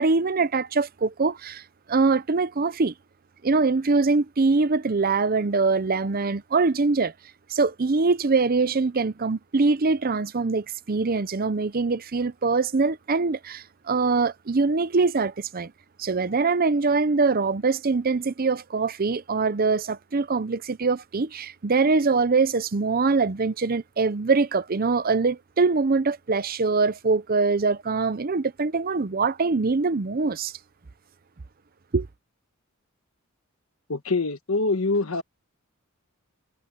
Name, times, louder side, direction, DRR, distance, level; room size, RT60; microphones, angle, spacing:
voice 1, 0.0-1.6 1.9-2.9 3.4-7.1 7.5-15.7 16.0-30.5 31.9-32.1, right 4 dB, 45° right, 0.6 m, -23 dB
voice 2, 33.9-35.2, left 3 dB, 80° left, 1.4 m, -24 dB
head